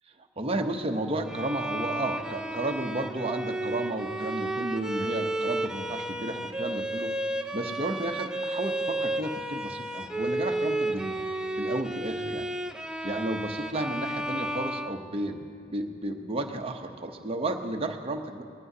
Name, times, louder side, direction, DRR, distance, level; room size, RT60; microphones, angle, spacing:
voice 1, 0.4-11.2 11.6-12.5 13.0-18.4, right 1 dB, 30° right, 4 dB, 0.8 m, -33 dB
Bowed string instrument, 1.3-15.6, right 1 dB, 5° right, 0.4 m, -32 dB
20.0 x 15.5 x 2.8 m, 2.4 s
head